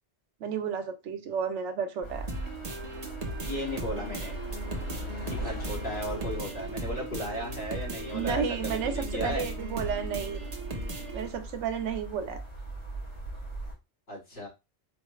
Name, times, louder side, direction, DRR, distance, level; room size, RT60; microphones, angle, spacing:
voice 1, 0.4-2.3 8.1-10.5 11.1-12.4, right 6 dB, 80° right, 0.9 m, -32 dB
sound 1, 2.0-13.7, right 1 dB, 75° left, 2.7 m, -39 dB
sound 2, 2.3-11.3, right 2 dB, 40° right, 0.7 m, -38 dB
voice 2, 3.4-4.3 5.3-9.4 14.1-14.5, equal, 60° left, 2.4 m, -35 dB
4.8 x 2.3 x 3.1 m
omnidirectional pair, 1.2 m